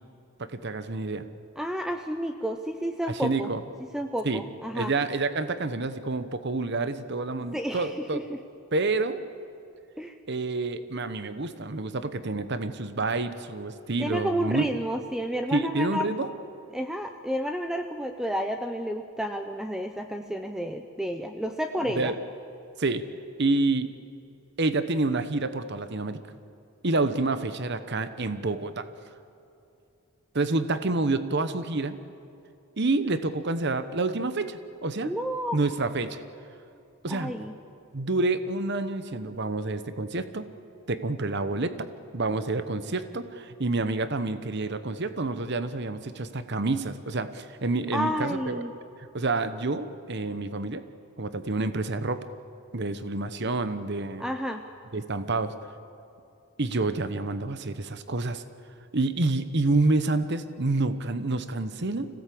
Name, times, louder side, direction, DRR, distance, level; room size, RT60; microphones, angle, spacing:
voice 1, 0.4-1.3 3.1-3.6 4.2-4.4 4.7-8.2 8.7-9.2 10.3-14.6 15.5-16.3 21.9-22.2 22.8-23.0 23.4-23.9 24.6-26.2 26.8-28.9 30.3-32.0 32.8-35.1 35.5-36.2 37.0-37.3 37.9-40.5 40.9-41.8 42.1-48.7 49.1-50.8 51.2-52.3 52.7-54.2 54.9-55.5 56.6-58.4 58.9-62.1, right 3 dB, 50° right, 11 dB, 1.0 m, -28 dB
voice 2, 1.6-3.5 3.9-4.9 7.5-8.4 10.0-10.2 14.0-16.1 16.7-22.1 35.0-35.6 37.1-37.5 47.9-48.7 54.2-54.6, equal, 5° right, 5 dB, 0.7 m, -31 dB
25.5 x 17.0 x 8.6 m, 2.6 s
head